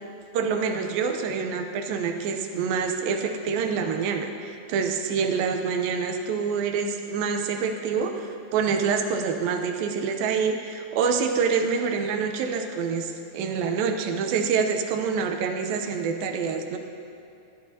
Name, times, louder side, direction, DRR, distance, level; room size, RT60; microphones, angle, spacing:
voice 1, 0.3-16.8, right 5 dB, 85° right, 5 dB, 2.5 m, -26 dB
16.5 x 11.0 x 2.8 m, 2.7 s
omnidirectional pair, 4.1 m